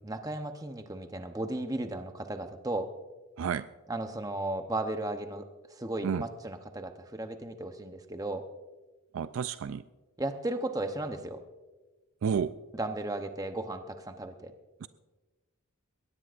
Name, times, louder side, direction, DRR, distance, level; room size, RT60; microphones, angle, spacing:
voice 1, 0.0-2.9 3.9-5.4 5.8-8.5 10.2-11.4 12.7-14.5, right 2 dB, 15° right, 7 dB, 0.8 m, -35 dB
voice 2, 9.1-9.8 12.2-12.5 14.8-14.9, right 7 dB, 70° right, 13 dB, 0.4 m, -30 dB
21.5 x 18.0 x 2.5 m, 1.3 s
head